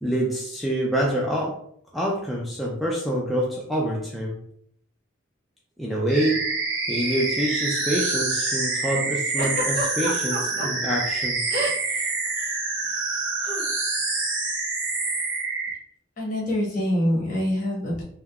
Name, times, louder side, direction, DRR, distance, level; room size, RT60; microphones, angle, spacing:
voice 1, 0.0-1.6 1.9-4.4 5.8-6.4 6.9-11.4, right 1 dB, ahead, -4 dB, 0.3 m, -26 dB
sound 1, 6.1-15.8, right 3 dB, 85° right, 1.0 m, -27 dB
Giggle, 9.4-10.7 11.5-12.0 12.3-12.5 13.4-13.6, right 1 dB, 55° right, 0.7 m, -29 dB
voice 2, 16.2-18.0, equal, 45° left, -4 dB, 1.1 m, -25 dB
3.6 x 2.1 x 2.2 m, 0.66 s
head